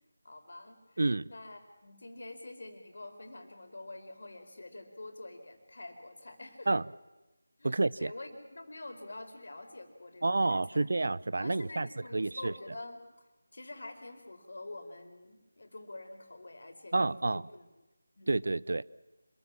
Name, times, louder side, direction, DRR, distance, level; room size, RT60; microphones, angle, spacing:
voice 1, 0.2-1.0 1.3-6.8 7.6-10.9 11.4-13.0 13.5-17.7 18.2-18.3, left 2 dB, 55° left, 4.6 m, -47 dB
voice 2, 1.0-1.3 6.7-6.8 7.6-8.1 10.2-11.9 12.1-12.5 16.9-17.5 18.3-18.8, right 2 dB, 55° right, 0.7 m, -29 dB
27.0 x 21.5 x 7.4 m
figure-of-eight pair, 165°, 0 cm